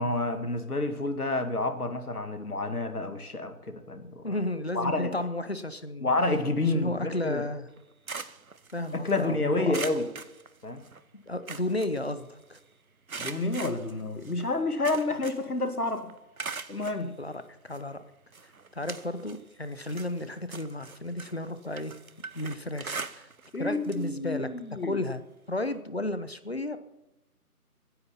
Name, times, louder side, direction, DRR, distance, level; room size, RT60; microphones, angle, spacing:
voice 1, 0.0-4.4 4.7-5.1 6.0-7.4 9.0-10.1 10.6-10.8 13.2-16.1 16.7-17.2 23.5-25.0, left 2 dB, 70° left, 8 dB, 2.2 m, -29 dB
voice 2, 4.2-6.1 6.7-7.7 8.7-9.8 11.1-12.6 17.2-18.0 18.7-22.0 22.3-23.3 23.6-24.5 24.8-25.2 25.5-26.8, left 1 dB, 40° left, 12 dB, 0.9 m, -33 dB
sound 1, 7.7-9.2 9.7-11.0 11.3-12.6 13.1-15.6 15.9-17.0 17.7-17.8 18.3-19.4 19.8-23.6 23.8-24.1 24.4-24.5 25.7-25.8, right 4 dB, 60° right, 0.9 m, -41 dB
15.5 x 9.9 x 5.7 m, 0.94 s
figure-of-eight pair, 170°, 47 cm